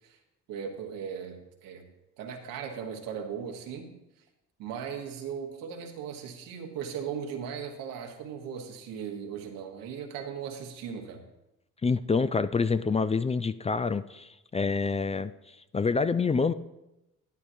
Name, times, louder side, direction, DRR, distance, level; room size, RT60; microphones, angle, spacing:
voice 1, 0.5-1.8 2.2-3.9 4.6-11.2, right 7 dB, 85° right, 3 dB, 1.3 m, -38 dB
voice 2, 11.8-15.3 15.7-16.5, left 4 dB, 20° left, 14 dB, 0.4 m, -27 dB
12.0 x 9.5 x 2.7 m, 0.94 s
supercardioid pair, 55°, 32 cm